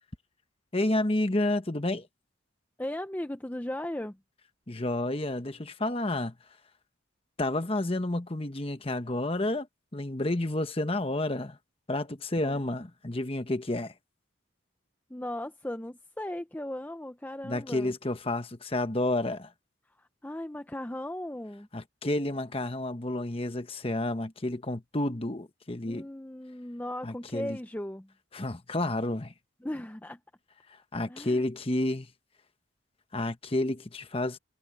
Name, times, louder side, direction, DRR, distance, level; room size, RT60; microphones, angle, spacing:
voice 1, 0.7-2.1 4.7-6.3 7.4-9.7 9.9-11.6 11.9-13.9 17.4-19.5 21.7-26.1 27.0-27.6 28.3-29.3 30.9-32.1 33.1-34.4, left 1 dB, 30° left, 1.1 m, -30 dB
voice 2, 2.8-4.2 12.4-12.6 15.1-17.9 20.0-21.7 25.9-28.1 29.6-30.2 31.1-31.5, left 1 dB, 10° left, 0.5 m, -37 dB
head